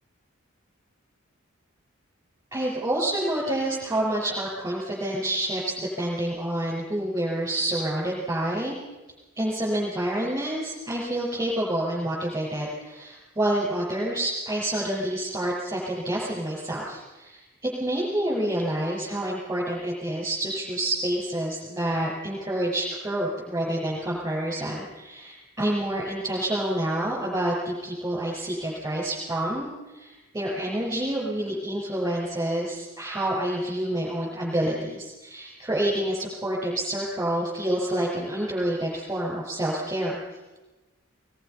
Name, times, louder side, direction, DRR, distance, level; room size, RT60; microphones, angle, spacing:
voice 1, 2.5-8.7 9.4-40.2, right 1 dB, 15° right, -6 dB, 5.7 m, -28 dB
21.5 x 21.0 x 5.7 m, 1.1 s
head